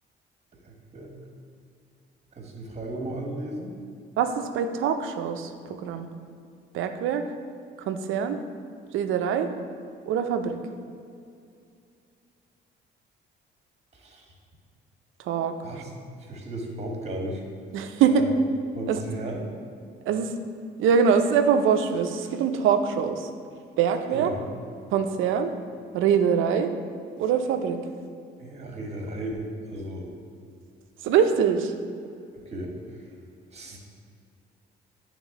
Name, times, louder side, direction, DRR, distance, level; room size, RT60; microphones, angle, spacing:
voice 1, 0.6-1.1 2.3-3.7 13.9-14.3 15.6-15.9 16.2-17.4 18.1-18.3 18.7-19.5 24.1-24.5 28.4-30.1 32.3-33.1 33.5-33.8, right 1 dB, 35° right, -1 dB, 1.4 m, -35 dB
voice 2, 4.2-6.1 6.7-7.2 7.8-8.4 8.9-9.5 10.1-10.6 15.2-15.5 17.7-18.2 18.9-19.0 20.1-20.3 20.8-23.3 23.8-24.3 24.9-25.5 25.9-26.7 27.2-27.8 31.0-31.7, right 7 dB, 85° right, 7 dB, 0.5 m, -23 dB
8.9 x 3.6 x 3.6 m, 2.4 s
cardioid pair, 90°, 20 cm